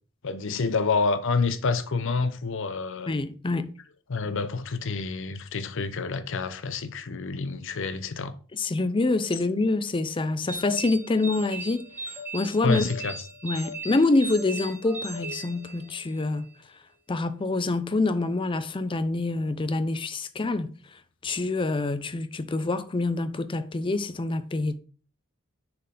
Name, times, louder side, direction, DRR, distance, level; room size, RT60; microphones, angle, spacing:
voice 1, 0.2-3.1 4.1-8.4 12.6-13.1, left 4 dB, 60° left, 0.6 m, -28 dB
voice 2, 3.1-3.7 8.5-12.9 13.4-16.5 17.1-20.7 21.2-24.8, left 2 dB, 25° left, 0.4 m, -26 dB
sound 1, 10.5-16.2, right 2 dB, 10° right, 1.6 m, -38 dB
6.6 x 4.5 x 3.8 m
head